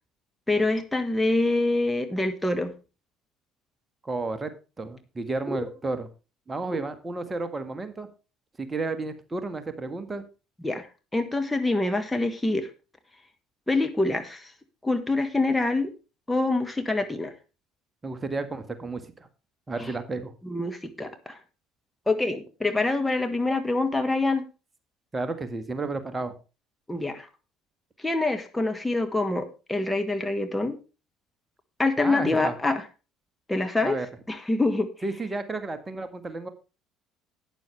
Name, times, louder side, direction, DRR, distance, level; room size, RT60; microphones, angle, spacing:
voice 1, 0.5-2.7 5.5-5.6 6.7-6.8 10.6-10.9 11.1-12.7 13.7-14.5 14.8-15.9 16.3-17.3 19.8-19.9 20.4-21.4 22.1-24.4 26.9-27.3 28.0-30.8 31.8-32.8 33.5-34.0 34.3-34.9, left 2 dB, 10° left, 6 dB, 1.5 m, -25 dB
voice 2, 4.0-6.1 6.5-8.1 8.6-10.2 18.0-19.3 19.7-20.3 25.1-26.3 32.0-32.5 33.8-34.1 35.0-36.5, right 3 dB, 20° right, 10 dB, 1.7 m, -32 dB
12.0 x 9.9 x 3.3 m, 0.31 s
figure-of-eight pair, 55°, 0 cm